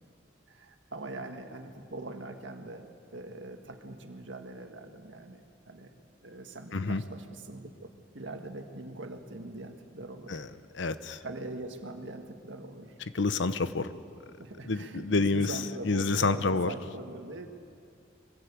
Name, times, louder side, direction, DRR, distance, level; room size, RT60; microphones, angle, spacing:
voice 1, 0.5-5.9 6.2-10.4 11.2-13.0 14.4-17.5, right 2 dB, 75° right, 5 dB, 1.7 m, -42 dB
voice 2, 10.8-11.2 13.1-13.9 14.7-15.6 15.8-16.7, left 3 dB, 75° left, 13 dB, 0.8 m, -28 dB
23.5 x 16.5 x 8.5 m, 2.4 s
head